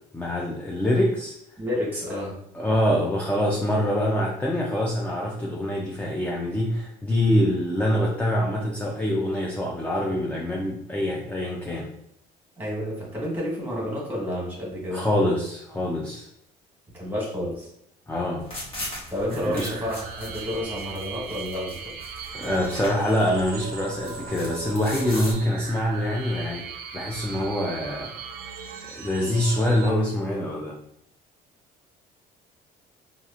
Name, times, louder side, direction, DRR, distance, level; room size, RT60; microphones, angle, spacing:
voice 1, 0.1-1.4 2.5-11.9 14.9-16.3 18.1-18.5 19.4-19.7 22.3-28.1 28.8-30.8, left 1 dB, 10° left, -2 dB, 0.4 m, -25 dB
voice 2, 1.6-2.4 12.6-15.0 16.9-17.7 19.1-21.9, left 1 dB, 10° right, -4 dB, 1.3 m, -30 dB
sound 1, 18.4-25.3, equal, 35° left, 1.1 m, -39 dB
sound 2, 19.2-29.9, right 6 dB, 65° right, 0.5 m, -39 dB
2.8 x 2.4 x 2.4 m, 0.75 s
cardioid pair, 110°, 17 cm